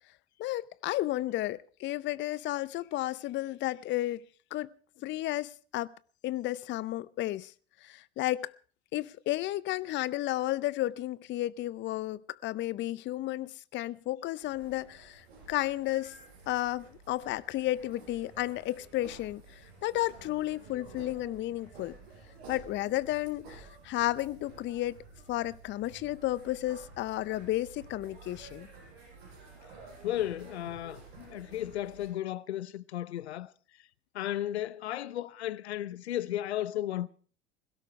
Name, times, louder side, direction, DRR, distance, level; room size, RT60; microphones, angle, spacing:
voice 1, 0.4-4.2 4.5-4.7 5.0-5.9 6.2-7.5 7.8-8.5 8.9-16.1 16.5-22.0 22.5-25.0 25.3-28.7, left 15 dB, 35° left, 0.6 m, -33 dB
sound 1, 14.4-32.1, right 4 dB, 70° right, 7.1 m, -52 dB
voice 2, 30.0-33.5 34.1-37.1, left 12 dB, 75° left, 0.8 m, -34 dB
21.5 x 17.0 x 3.2 m
figure-of-eight pair, 75°, 33 cm